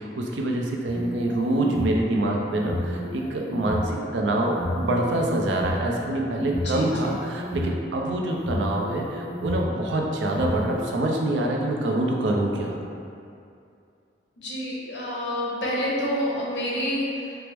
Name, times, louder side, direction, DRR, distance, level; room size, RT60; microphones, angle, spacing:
voice 1, 0.0-12.8, right 1 dB, 85° right, 0 dB, 0.5 m, -25 dB
sound 1, 0.8-2.0 2.5-3.8 4.4-5.7 6.4-7.8 8.3-9.7 10.2-10.8, left 1 dB, 30° right, 0.9 m, -32 dB
voice 2, 6.6-7.1 14.4-17.4, equal, 75° left, -5 dB, 0.9 m, -28 dB
4.5 x 2.0 x 3.4 m, 2.5 s
head